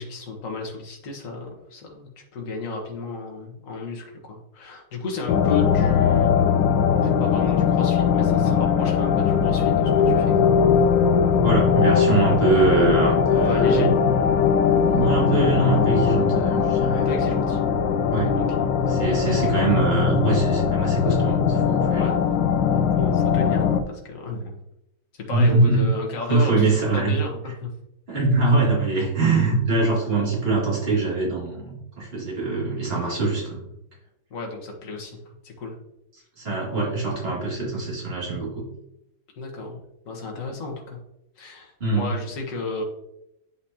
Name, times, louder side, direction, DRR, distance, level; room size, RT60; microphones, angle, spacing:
voice 1, 0.0-6.3 7.0-10.5 13.3-13.9 16.9-17.6 18.3-18.7 21.9-22.2 23.0-24.5 25.1-26.6 26.9-27.7 28.4-28.6 34.3-35.2 35.4-35.7 39.4-39.8 40.0-41.0 41.4-42.8, left 4 dB, 40° left, 0 dB, 1.5 m, -32 dB
sound 1, 5.3-23.8, left 6 dB, 70° left, 1.2 m, -20 dB
voice 2, 11.4-13.9 14.9-17.1 18.1-18.4 18.9-22.1 25.3-25.9 26.3-27.1 28.1-33.6 36.4-38.7 41.8-42.1, right 3 dB, 25° right, -4 dB, 2.5 m, -23 dB
8.9 x 5.1 x 2.8 m, 0.81 s
omnidirectional pair, 2.4 m